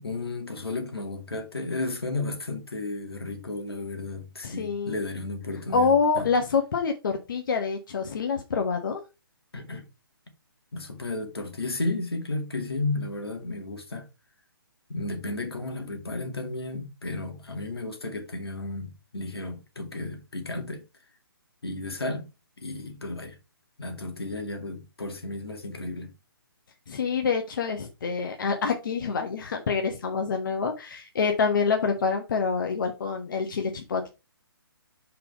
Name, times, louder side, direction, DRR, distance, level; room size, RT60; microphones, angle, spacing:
voice 1, 0.0-6.3 9.5-9.9 10.7-14.1 14.9-20.8 21.6-22.3 22.6-23.4 23.8-26.1, left 2 dB, 80° left, 2.3 m, -33 dB
voice 2, 4.4-5.0 5.7-9.0 26.9-34.1, left 5 dB, 55° left, 1.3 m, -26 dB
5.9 x 4.6 x 4.8 m
figure-of-eight pair, 140°, 13 cm